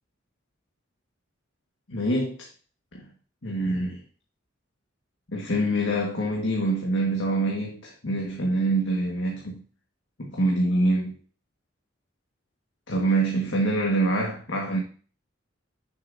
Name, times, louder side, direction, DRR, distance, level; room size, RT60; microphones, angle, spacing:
voice 1, 1.9-2.4 2.9-3.0 3.4-4.0 5.3-9.6 10.2-11.1 12.9-14.8, right 1 dB, 85° left, 1.6 m, -25 dB
9.6 x 7.1 x 2.6 m
head